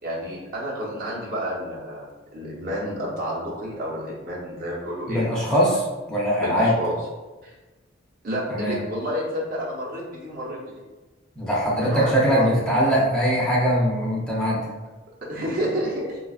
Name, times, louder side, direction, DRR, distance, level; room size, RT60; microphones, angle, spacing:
voice 1, 0.0-5.2 6.4-6.9 7.4-7.5 8.2-10.6 11.8-12.5 15.2-16.2, equal, 50° right, -5 dB, 0.9 m, -30 dB
voice 2, 5.1-5.8 6.1-6.7 8.5-8.8 11.4-14.7, equal, 5° left, -6 dB, 0.5 m, -21 dB
4.2 x 2.3 x 2.4 m, 1.2 s
head